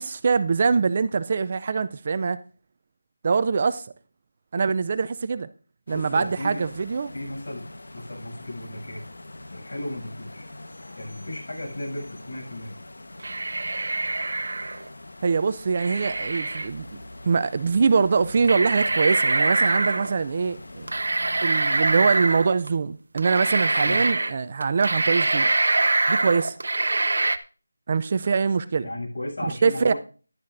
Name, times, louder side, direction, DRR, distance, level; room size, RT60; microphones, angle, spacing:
voice 1, 0.0-2.4 3.2-3.8 4.5-5.5 5.9-7.1 15.2-20.9 21.4-25.5 26.1-26.6 27.9-28.9 29.6-29.9, right 5 dB, 30° right, 0.4 m, -23 dB
sound 1, 5.9-22.1, left 2 dB, 75° left, 1.2 m, -43 dB
voice 2, 5.9-6.7 7.1-7.7 7.9-9.0 9.5-10.5 11.0-12.8 23.8-24.2 28.8-30.0, left 1 dB, 60° left, 7.1 m, -35 dB
sound 2, 13.2-14.9 15.8-16.7 17.8-17.9 18.4-20.1 20.9-22.7 23.2-24.3 24.6-27.4, right 2 dB, 65° right, 0.7 m, -24 dB
13.5 x 11.0 x 2.6 m
figure-of-eight pair, 170°, 0 cm